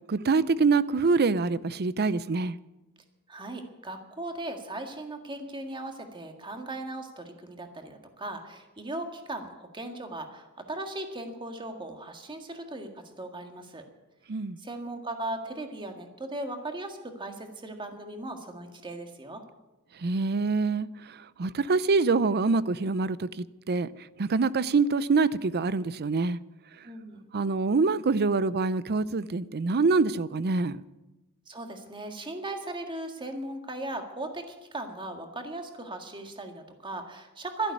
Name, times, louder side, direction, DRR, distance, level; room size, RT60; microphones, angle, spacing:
voice 1, 0.1-2.6 14.3-14.6 20.0-23.9 24.2-26.4 27.3-30.8, right 4 dB, 45° right, 0.5 m, -25 dB
voice 2, 3.3-13.8 14.6-19.4 26.8-27.3 31.5-37.7, right 2 dB, 20° right, 1.8 m, -38 dB
12.5 x 11.0 x 9.5 m
head